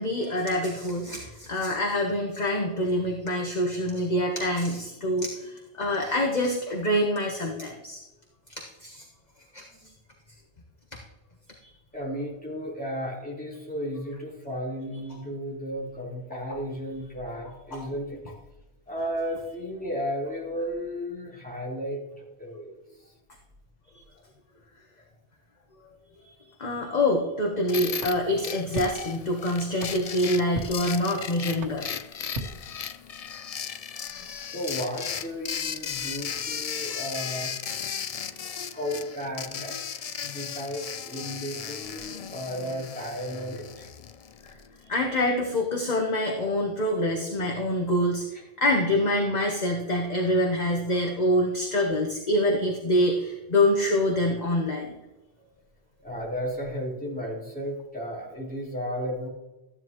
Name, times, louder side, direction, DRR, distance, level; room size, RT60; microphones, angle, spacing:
voice 1, 0.0-8.0 8.8-9.0 9.5-9.6 17.7-17.8 26.6-31.8 44.9-48.3 48.6-54.9, left 1 dB, 40° left, 1 dB, 1.3 m, -25 dB
voice 2, 11.9-18.2 18.9-22.7 34.2-37.7 38.5-39.9 40.2-43.9 44.8-45.0 51.0-51.1 51.7-51.8 55.4-55.5 56.0-59.3, equal, 5° left, -6 dB, 4.0 m, -34 dB
sound 1, 27.7-44.7, left 7 dB, 55° left, 0.4 m, -36 dB
sound 2, 28.0-33.3, right 2 dB, 85° right, 1.5 m, -41 dB
14.5 x 10.0 x 3.1 m, 1.0 s
omnidirectional pair, 1.2 m